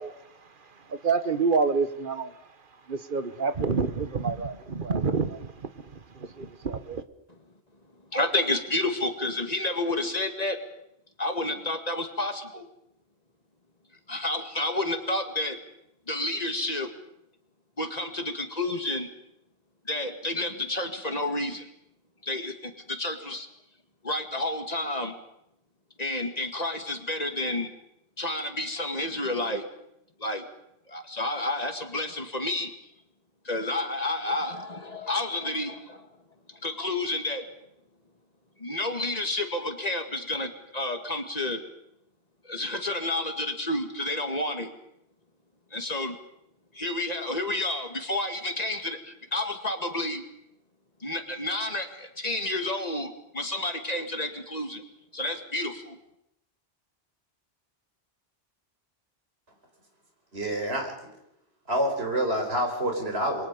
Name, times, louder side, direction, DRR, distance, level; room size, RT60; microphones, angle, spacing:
voice 1, 0.0-2.4 2.9-7.0, right 4 dB, 55° right, 11 dB, 1.4 m, -28 dB
voice 2, 8.1-10.6 11.2-12.7 14.1-15.6 16.1-16.9 17.8-19.1 19.9-21.7 22.2-23.5 24.0-25.1 26.0-27.7 28.2-29.7 30.2-30.4 30.9-32.7 33.4-36.0 36.6-37.5 38.6-41.6 42.4-44.7 45.7-46.2 46.7-50.2 51.0-54.8 55.1-56.0, left 2 dB, 40° left, 6 dB, 2.4 m, -30 dB
voice 3, 60.3-60.9 61.7-63.5, right 1 dB, 70° right, 3 dB, 5.2 m, -27 dB
27.0 x 23.0 x 5.4 m, 0.78 s
omnidirectional pair, 1.1 m